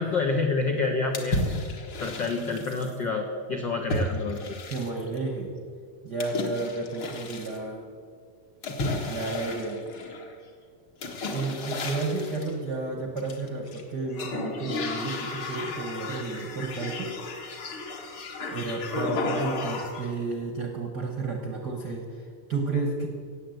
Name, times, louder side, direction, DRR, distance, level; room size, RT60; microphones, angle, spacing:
voice 1, 0.0-1.4 2.0-4.4, left 3 dB, 80° left, 2 dB, 1.0 m, -28 dB
sound 1, 1.1-3.0 3.9-5.2 6.2-7.6 8.6-10.3 11.0-12.5 13.2-13.8 14.1-20.1, left 2 dB, 45° left, 2.0 m, -33 dB
voice 2, 4.7-5.5 6.0-7.9 9.0-9.8 11.3-17.1 18.0-23.1, right 3 dB, 55° right, 3 dB, 1.1 m, -32 dB
17.5 x 7.9 x 7.9 m, 2.1 s
omnidirectional pair, 3.8 m